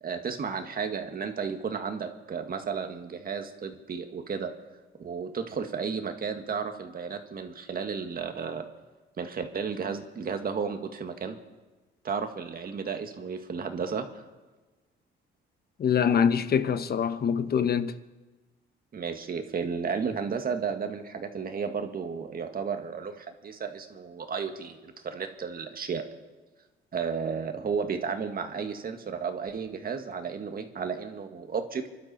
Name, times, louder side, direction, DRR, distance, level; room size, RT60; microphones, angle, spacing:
voice 1, 0.0-4.5 5.0-8.6 9.2-11.4 12.0-14.1 18.9-26.0 26.9-31.9, right 6 dB, 45° right, 1.9 m, -33 dB
voice 2, 15.8-17.9, left 7 dB, 50° left, 1.1 m, -24 dB
27.0 x 12.0 x 4.4 m
cardioid pair, 90°, 20 cm